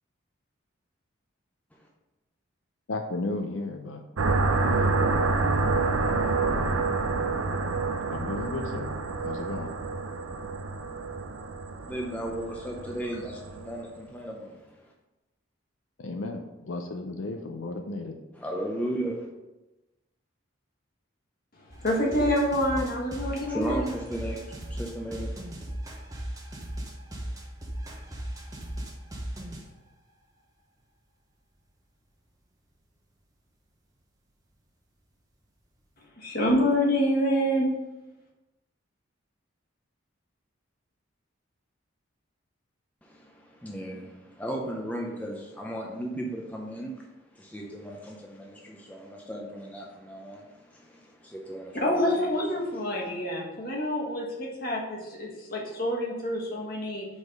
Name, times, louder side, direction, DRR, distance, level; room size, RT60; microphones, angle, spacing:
voice 1, 2.9-4.0 4.8-5.0 8.1-8.9 9.2-9.7 16.0-18.1 27.3-27.4, left 2 dB, 75° left, 4 dB, 0.5 m, -34 dB
sound 1, 4.2-13.7, right 3 dB, 90° right, 0.6 m, -28 dB
voice 2, 11.9-14.9 18.4-19.3 23.2-25.5 43.0-47.0 47.3-51.8 52.9-53.0, right 1 dB, 5° left, -1 dB, 0.5 m, -36 dB
voice 3, 21.6-23.8 36.0-37.7 51.7-57.1, equal, 45° left, -2 dB, 1.3 m, -27 dB
sound 2, 21.7-29.6, right 1 dB, 15° right, 0.8 m, -37 dB
4.9 x 4.1 x 5.2 m, 1.0 s
head